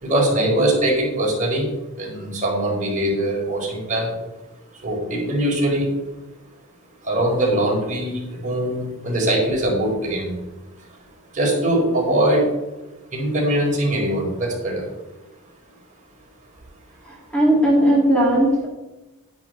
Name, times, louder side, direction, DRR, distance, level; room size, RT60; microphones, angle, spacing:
voice 1, 0.0-4.1 4.8-5.9 7.0-10.3 11.3-12.4 13.1-14.8, right 1 dB, 35° right, -3 dB, 4.7 m, -22 dB
voice 2, 17.0-18.7, right 1 dB, 5° left, -4 dB, 2.3 m, -17 dB
11.0 x 10.0 x 4.6 m, 1.0 s
head